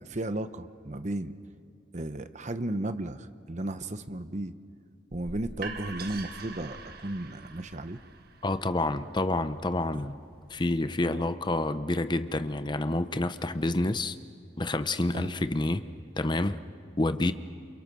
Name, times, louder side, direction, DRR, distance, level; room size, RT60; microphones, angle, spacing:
voice 1, 0.0-1.3 1.9-4.5 5.1-8.0 11.0-11.2 15.1-15.3, right 1 dB, 40° right, 0.9 m, -34 dB
sound 1, 5.1-10.9, right 4 dB, 55° right, 1.6 m, -45 dB
voice 2, 8.4-10.2 10.5-14.2 14.6-15.8 16.2-16.6 17.0-17.3, left 2 dB, 25° left, 0.8 m, -28 dB
29.5 x 28.0 x 6.3 m
head